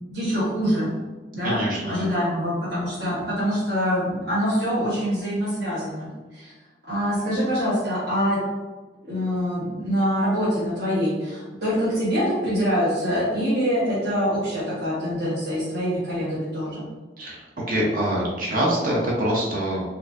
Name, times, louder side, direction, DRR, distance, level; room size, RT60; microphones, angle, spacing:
voice 1, 0.1-0.9 1.3-6.5 6.9-8.4 9.0-16.9, equal, 65° right, -10 dB, 1.2 m, -25 dB
voice 2, 1.4-2.1 17.2-19.8, right 1 dB, 50° right, -3 dB, 0.7 m, -25 dB
4.3 x 2.6 x 2.5 m, 1.2 s
head